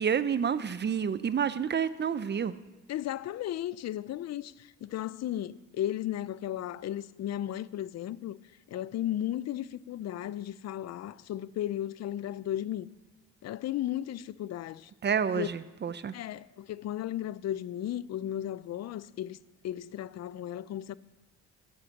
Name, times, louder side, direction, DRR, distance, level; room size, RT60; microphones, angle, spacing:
voice 1, 0.0-2.5 15.0-16.1, right 7 dB, 35° right, 0.6 m, -29 dB
voice 2, 2.9-8.4 8.7-12.9 13.4-14.9 15.4-15.5 16.1-19.4 19.6-20.9, left 12 dB, 60° left, 0.5 m, -35 dB
16.0 x 8.1 x 7.1 m
cardioid pair, 90°, 30 cm